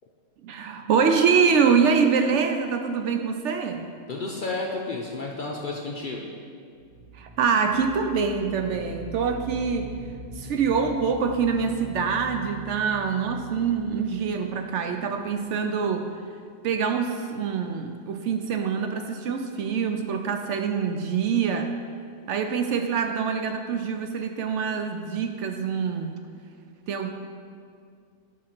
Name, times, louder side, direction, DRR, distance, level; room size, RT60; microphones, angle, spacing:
voice 1, 0.4-3.9 7.2-9.9 10.4-16.1 16.6-21.7 22.3-26.1 26.9-27.1, right 6 dB, 70° right, 6 dB, 0.8 m, -25 dB
voice 2, 4.1-6.3, left 3 dB, 50° left, -1 dB, 0.6 m, -31 dB
sound 1, 6.8-15.4, right 1 dB, 90° right, 2.0 m, -42 dB
10.5 x 3.8 x 5.8 m, 2.2 s
omnidirectional pair, 1.4 m